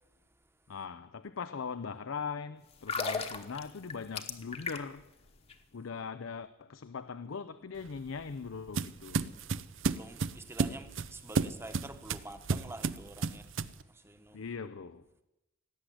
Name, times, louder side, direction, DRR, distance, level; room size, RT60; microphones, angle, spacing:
voice 1, 0.7-5.0 5.7-9.3 14.3-15.0, left 5 dB, 70° left, 0.5 m, -40 dB
sound 1, 2.7-5.1 5.4-5.5, left 4 dB, 30° left, 1.1 m, -36 dB
sound 2, 7.8-13.8, right 4 dB, 65° right, 0.6 m, -33 dB
voice 2, 9.8-13.5 13.9-14.4, right 1 dB, 10° right, 1.0 m, -47 dB
17.5 x 8.0 x 9.9 m
head